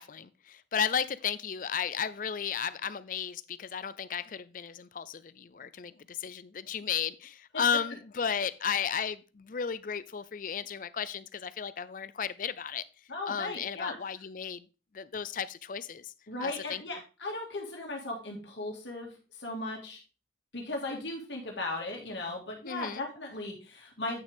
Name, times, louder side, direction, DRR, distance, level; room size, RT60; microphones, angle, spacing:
voice 1, 0.0-12.8 13.3-14.6 14.9-16.1 16.4-16.8 22.7-23.0, left 7 dB, 45° left, 0.4 m, -34 dB
voice 2, 13.1-13.9 16.3-19.1 19.4-20.0 20.5-24.2, left 2 dB, 80° left, 2.1 m, -37 dB
9.0 x 6.1 x 3.5 m
head